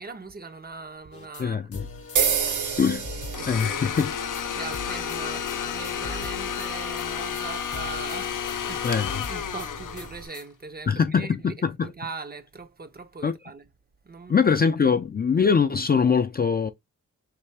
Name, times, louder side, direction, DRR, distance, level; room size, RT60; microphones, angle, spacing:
voice 1, 0.0-1.7 2.1-2.6 3.4-3.9 4.5-9.0 9.3-13.6 14.0-14.3 14.8-15.0, right 4 dB, 30° right, 0.5 m, -41 dB
sound 1, 1.1-1.4 1.7-4.1 4.3-4.4 4.7-7.1 7.3-7.4 7.7-10.4, left 4 dB, 50° left, 0.8 m, -41 dB
voice 2, 1.4-1.9 2.8-3.1 3.5-4.1 8.8-9.2 10.9-11.9 13.2-13.3 14.3-16.7, left 6 dB, 30° left, 0.4 m, -22 dB
sound 2, 2.2-10.3, right 7 dB, 75° right, 0.7 m, -33 dB
Domestic sounds home sounds, 3.3-10.4, left 8 dB, 75° left, 0.6 m, -31 dB
3.3 x 2.6 x 3.2 m
wide cardioid pair, 75°, 31 cm